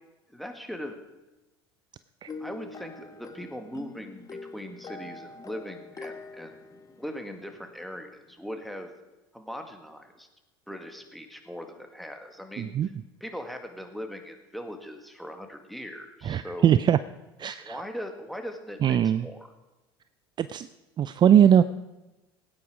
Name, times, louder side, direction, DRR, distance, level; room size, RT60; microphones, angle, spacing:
voice 1, 0.3-1.0 2.4-6.6 7.0-8.9 9.3-10.3 10.7-12.9 13.2-16.8 17.6-19.5, equal, ahead, 4 dB, 2.0 m, -40 dB
sound 1, 2.3-7.7, left 3 dB, 25° left, 1.5 m, -44 dB
voice 2, 12.6-12.9 16.2-17.0 17.4-17.8 18.8-19.3 20.4-20.7 21.0-21.6, right 9 dB, 35° right, 14 dB, 0.5 m, -21 dB
17.5 x 9.5 x 5.0 m, 1.1 s
hypercardioid pair, 80°, 13 cm